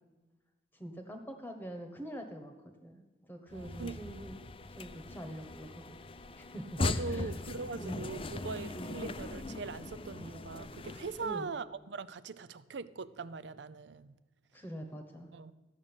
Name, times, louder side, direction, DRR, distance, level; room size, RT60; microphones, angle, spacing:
voice 1, 0.7-2.5 2.8-3.0 3.3-4.4 4.7-6.0 6.4-6.8 7.1-7.3 7.8-8.1 8.7-9.0 11.2-11.5 14.5-15.3, right 1 dB, 10° left, 5 dB, 1.1 m, -44 dB
sound 1, 3.5-11.4, left 2 dB, 30° left, 0.5 m, -39 dB
voice 2, 3.5-4.0 6.8-14.1 15.3-15.5, right 4 dB, 75° right, 16 dB, 0.5 m, -41 dB
13.5 x 6.4 x 9.0 m, 1.2 s
head